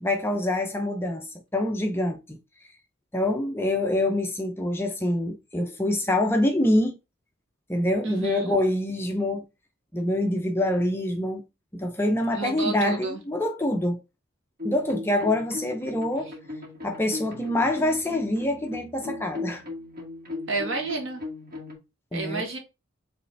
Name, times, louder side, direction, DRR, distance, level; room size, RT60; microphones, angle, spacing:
voice 1, 0.0-2.4 3.1-7.0 7.7-9.4 9.9-11.4 11.7-14.0 14.6-16.3 16.8-19.6 22.1-22.5, left 1 dB, 10° left, 0.5 m, -25 dB
voice 2, 8.0-8.6 12.3-13.2 20.5-21.2 22.1-22.6, right 3 dB, 65° right, 1.5 m, -30 dB
sound 1, 14.6-21.8, left 2 dB, 45° right, 1.9 m, -38 dB
5.2 x 3.1 x 3.3 m
head